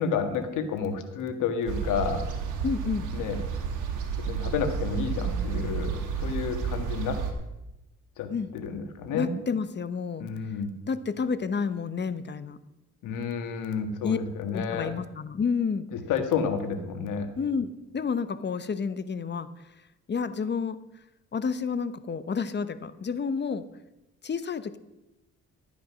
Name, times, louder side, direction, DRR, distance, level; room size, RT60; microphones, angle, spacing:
voice 1, 0.0-2.2 3.1-3.4 4.2-7.2 8.2-9.3 10.2-10.7 13.0-14.9 15.9-17.3, left 6 dB, 90° left, 7 dB, 1.8 m, -30 dB
sound 1, 1.7-7.3, right 6 dB, 85° right, 2.3 m, -31 dB
voice 2, 2.6-3.1 8.3-8.5 9.1-10.3 10.9-12.6 14.0-14.2 14.5-15.9 17.4-19.5 20.1-20.8 21.3-23.6 24.2-24.8, left 5 dB, 35° left, 13 dB, 0.9 m, -30 dB
13.0 x 9.3 x 6.2 m, 0.94 s
cardioid pair, 90°, 30 cm